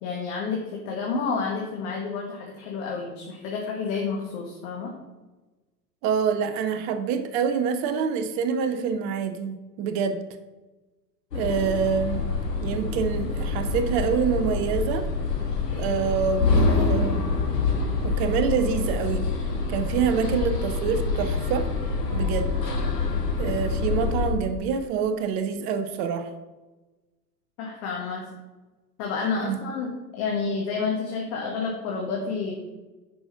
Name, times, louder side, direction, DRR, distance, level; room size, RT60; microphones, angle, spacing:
voice 1, 0.0-4.9 27.6-28.2 29.0-29.9 30.2-32.5, left 5 dB, 45° left, -1 dB, 1.8 m, -29 dB
voice 2, 6.0-10.2 11.3-12.2 12.6-15.1 15.7-17.3 18.0-19.3 19.7-21.7 22.1-22.5 23.4-26.3 29.4-29.6, right 6 dB, 20° right, 9 dB, 0.3 m, -26 dB
sound 1, 11.3-24.3, left 3 dB, 75° left, 2.0 m, -26 dB
9.3 x 5.7 x 5.6 m, 1.2 s
figure-of-eight pair, 85°, 49 cm